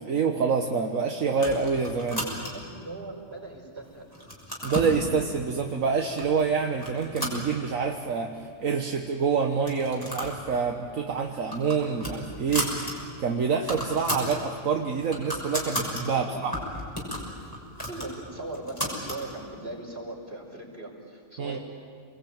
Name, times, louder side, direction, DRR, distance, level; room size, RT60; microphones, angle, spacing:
voice 1, 0.0-2.2 4.6-12.7 13.2-16.5 21.4-21.6, right 5 dB, 75° right, 2 dB, 1.7 m, -27 dB
sound 1, 1.3-2.8 3.3-3.8 4.1-5.0 5.7-5.8 6.2-6.4 6.8-8.0 8.4-8.5 8.7-8.8 9.5-10.4 10.7-10.9 11.3-12.9 13.3-13.4 13.6-14.4 14.8-16.0 16.5-19.2, equal, 15° left, 6.2 m, -34 dB
voice 2, 2.0-4.1 16.1-16.4 17.9-21.6, right 2 dB, 45° right, -1 dB, 5.5 m, -39 dB
29.0 x 21.5 x 8.9 m, 2.1 s
omnidirectional pair, 1.4 m